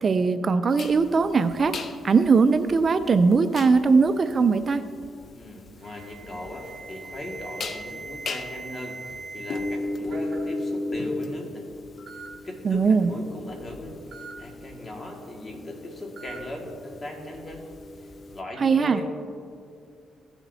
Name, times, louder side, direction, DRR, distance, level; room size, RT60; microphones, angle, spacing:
voice 1, 0.0-1.7 2.0-4.8 12.6-13.1 18.6-19.0, right 4 dB, 40° right, 11 dB, 0.4 m, -20 dB
sound 1, 0.8-18.4, left 2 dB, 50° left, 0.6 m, -37 dB
voice 2, 5.2-11.7 12.4-17.6 18.3-19.1, left 1 dB, 30° left, 0 dB, 1.9 m, -38 dB
Alarm, 5.8-9.8 10.1-10.5 11.4-11.5 12.1-12.3 14.1-14.3 16.2-16.4, right 3 dB, 55° right, 1.8 m, -40 dB
16.0 x 7.1 x 2.7 m, 2.4 s
cardioid pair, 90°, 0 cm